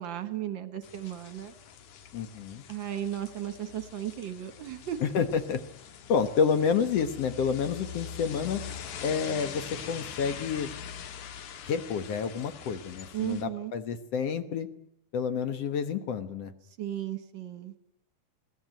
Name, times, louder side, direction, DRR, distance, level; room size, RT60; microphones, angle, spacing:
voice 1, 0.0-1.5 2.7-5.1 13.1-13.7 16.8-17.7, right 11 dB, 50° right, 12 dB, 1.6 m, -35 dB
sound 1, 0.8-13.4, left 8 dB, 80° left, 2.9 m, -43 dB
voice 2, 2.1-2.6 5.0-5.6 6.1-8.6 9.0-10.7 11.7-14.7 15.1-16.5, left 6 dB, 60° left, 10 dB, 2.0 m, -29 dB
21.5 x 18.0 x 9.1 m, 0.74 s
omnidirectional pair, 3.5 m